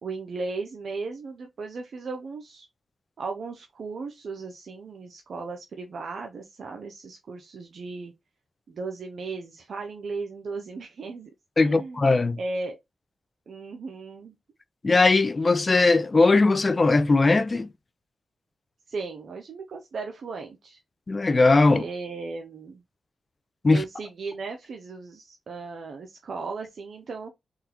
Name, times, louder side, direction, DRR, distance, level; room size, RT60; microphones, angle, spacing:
voice 1, 0.0-2.7 3.2-8.1 8.7-11.3 11.6-12.1 12.4-12.8 13.5-14.4 18.9-20.8 21.7-22.8 23.7-27.3, right 4 dB, 70° right, 0.5 m, -36 dB
voice 2, 11.6-12.4 14.8-17.7 21.1-21.8 23.6-23.8, left 3 dB, 40° left, 0.4 m, -19 dB
3.6 x 2.2 x 2.9 m
supercardioid pair, 45°, 0 cm